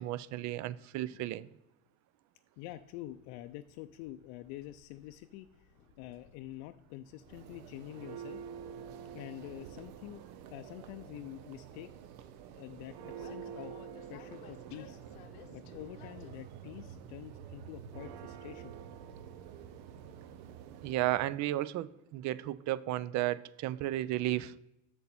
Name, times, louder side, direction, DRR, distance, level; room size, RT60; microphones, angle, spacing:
voice 1, 0.0-1.5 20.8-24.5, right 14 dB, 40° right, 19 dB, 0.4 m, -33 dB
voice 2, 1.0-1.4 2.6-8.4 9.1-10.2 10.5-11.9 12.6-13.7 14.1-15.0 15.5-18.7, left 14 dB, 65° left, 8 dB, 0.5 m, -47 dB
Train, 2.6-16.3, left 8 dB, 90° left, 0.9 m, -60 dB
Church bell, 7.1-21.4, right 8 dB, 70° right, 0.8 m, -48 dB
7.1 x 6.6 x 4.2 m, 0.88 s
supercardioid pair, 100°, 43 cm